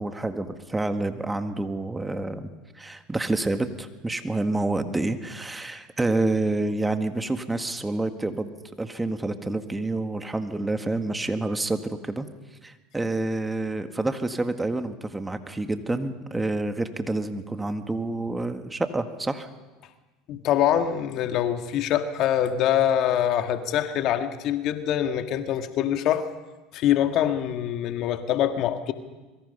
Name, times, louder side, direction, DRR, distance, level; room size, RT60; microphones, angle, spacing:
voice 1, 0.0-2.5 2.8-12.3 12.6-19.5, right 2 dB, 10° right, 8 dB, 1.8 m, -28 dB
voice 2, 20.3-26.3 26.7-28.9, left 10 dB, 55° left, 7 dB, 1.7 m, -24 dB
26.0 x 22.5 x 5.6 m, 1.2 s
hypercardioid pair, 80°, 0 cm